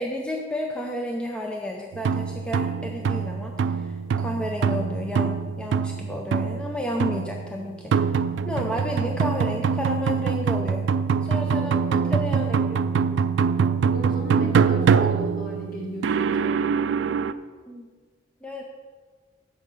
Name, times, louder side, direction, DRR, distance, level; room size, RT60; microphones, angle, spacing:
voice 1, 0.0-8.1 8.5-10.8 11.2-13.0 17.7-17.9 18.4-18.6, left 1 dB, 5° left, 0 dB, 0.5 m, -32 dB
sound 1, 1.9-17.3, right 6 dB, 75° right, 0.3 m, -24 dB
voice 2, 11.3-11.7 12.0-12.4 13.9-16.7, right 1 dB, 50° left, -1 dB, 1.7 m, -36 dB
7.6 x 5.2 x 6.4 m, 1.5 s
head